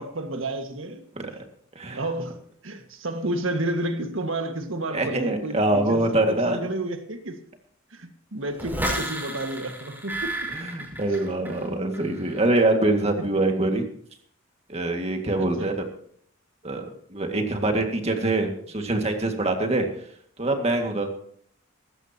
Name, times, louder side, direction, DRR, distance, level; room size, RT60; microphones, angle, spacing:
voice 1, 0.0-1.0 1.3-1.4 1.9-7.4 7.9-10.4 11.1-11.2 15.4-15.8, right 1 dB, 70° right, 6 dB, 1.8 m, -31 dB
voice 2, 4.9-6.7 10.5-13.9 14.7-15.7 16.6-19.9 20.4-21.1, right 2 dB, 30° right, 4 dB, 2.1 m, -24 dB
sound 1, 8.6-11.6 11.9-12.4, right 1 dB, 10° right, 5.5 m, -32 dB
19.0 x 16.0 x 3.0 m, 0.63 s
head